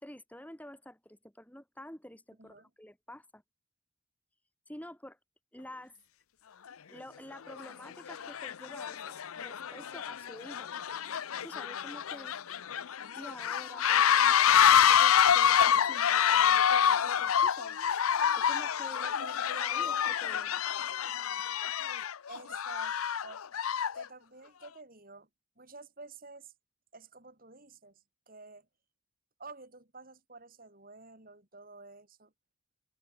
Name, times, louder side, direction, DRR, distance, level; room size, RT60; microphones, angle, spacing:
voice 1, 0.0-3.4 4.7-5.2 5.5-6.0 6.9-10.7 11.4-12.3 13.1-17.8 18.3-19.1 19.6-20.6, left 1 dB, 5° left, 3.1 m, -49 dB
voice 2, 2.4-2.7 18.8-20.0 22.3-23.0 23.2-23.4 23.9-25.3 25.6-26.5 26.9-28.7 29.4-32.3, right 3 dB, 40° right, 5.4 m, -50 dB
sound 1, 6.7-6.8 7.5-7.7 8.1-24.1, left 8 dB, 80° left, 0.6 m, -27 dB
head